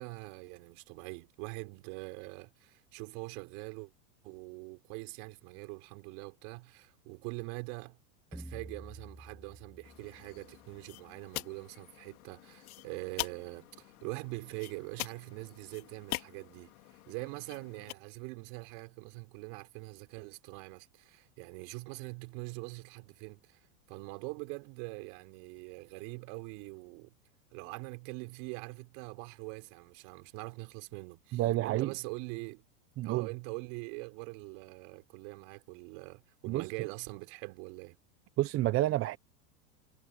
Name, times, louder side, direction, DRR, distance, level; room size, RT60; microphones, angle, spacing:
voice 1, 0.0-3.9 4.2-8.0 8.3-23.6 23.9-27.1 27.5-32.7 33.0-38.0, right 33 dB, 55° right, 6.1 m, -43 dB
sound 1, 8.3-11.1, right 1 dB, ahead, 1.1 m, -50 dB
sound 2, 9.8-17.9, left 18 dB, 75° left, 3.8 m, -44 dB
voice 2, 31.3-31.9 33.0-33.3 36.5-36.7 38.4-39.2, right 16 dB, 30° right, 0.8 m, -29 dB
supercardioid pair, 135°, 44 cm